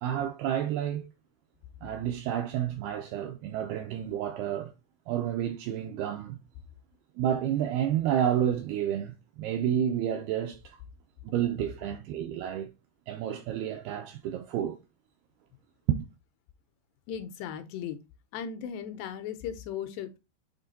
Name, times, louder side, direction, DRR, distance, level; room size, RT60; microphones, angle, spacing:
voice 1, 0.0-1.1 1.8-4.7 5.1-6.4 7.2-10.8 11.2-12.7 13.1-14.8 15.9-16.0, right 10 dB, 85° right, 2.3 m, -30 dB
voice 2, 17.1-18.0 18.3-20.2, left 8 dB, 80° left, 2.7 m, -37 dB
8.1 x 3.6 x 4.0 m
omnidirectional pair, 5.2 m